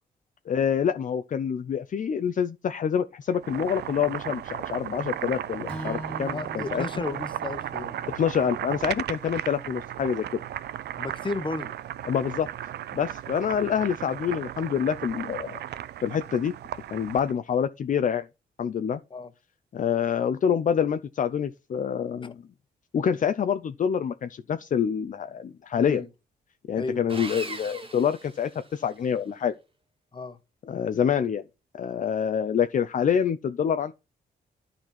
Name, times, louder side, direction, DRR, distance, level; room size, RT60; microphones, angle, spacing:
voice 1, 0.5-6.8 8.2-10.4 12.0-12.5 12.9-15.6 16.0-16.5 16.9-18.3 18.6-19.0 19.7-22.4 22.9-26.0 26.7-29.5 30.7-31.4 31.8-33.9, left 8 dB, 50° left, 0.6 m, -26 dB
Boiling, 3.3-17.3, right 11 dB, 80° right, 0.5 m, -35 dB
Strum, 5.7-10.0, equal, 5° left, 2.6 m, -43 dB
voice 2, 6.3-8.0 11.0-11.8 19.1-19.3 22.2-22.3 25.7-26.1 26.8-27.0 30.1-30.4, left 3 dB, 30° left, 1.2 m, -33 dB
Sawing, 27.1-29.0, right 2 dB, 30° right, 2.1 m, -39 dB
12.0 x 4.4 x 4.3 m
cardioid pair, 100°, 17 cm